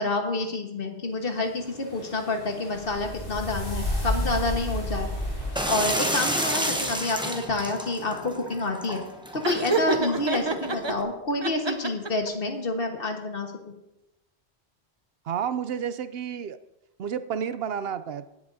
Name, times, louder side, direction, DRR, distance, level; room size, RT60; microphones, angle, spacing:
voice 1, 0.0-5.1 5.7-9.0 9.3-13.5, left 2 dB, 55° left, 3 dB, 1.6 m, -28 dB
sound 1, 1.4-6.7, left 1 dB, 75° left, 4.1 m, -32 dB
sound 2, 5.6-11.0, equal, 5° right, 0.9 m, -31 dB
Laughter, 9.4-10.9 11.4-12.3, right 3 dB, 30° right, 0.6 m, -27 dB
voice 2, 15.3-16.6 17.0-18.3, right 8 dB, 70° right, 13 dB, 0.8 m, -30 dB
17.0 x 10.5 x 2.7 m, 0.91 s
omnidirectional pair, 1.1 m